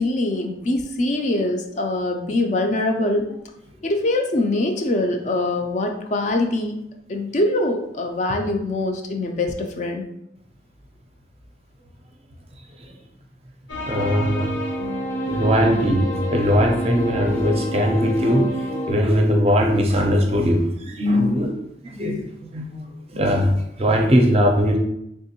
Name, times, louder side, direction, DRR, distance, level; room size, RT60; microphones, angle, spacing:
voice 1, 0.0-3.3 3.8-6.8 7.1-10.0, left 2 dB, 40° left, 4 dB, 0.4 m, -23 dB
sound 1, 13.7-18.9, equal, 75° left, 0.8 m, -28 dB
voice 2, 13.9-14.6 15.3-18.5 18.9-21.6 21.8-24.8, equal, 30° right, 2 dB, 0.5 m, -20 dB
3.5 x 3.0 x 2.9 m, 0.79 s
head